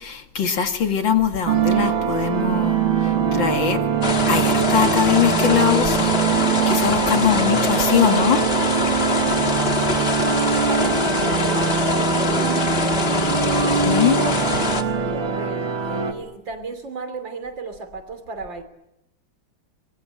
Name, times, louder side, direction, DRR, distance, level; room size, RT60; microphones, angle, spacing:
voice 1, 0.0-3.8 4.3-6.2 6.7-8.4 13.8-14.2, left 8 dB, 65° left, 6 dB, 2.7 m, -21 dB
sound 1, 1.5-16.1, right 7 dB, 90° right, 2.8 m, -22 dB
sound 2, 4.0-14.8, left 4 dB, 30° left, 1.8 m, -23 dB
voice 2, 7.1-8.6 9.3-18.6, right 4 dB, 65° right, 9 dB, 3.7 m, -34 dB
24.5 x 22.0 x 8.9 m, 0.87 s
omnidirectional pair, 2.2 m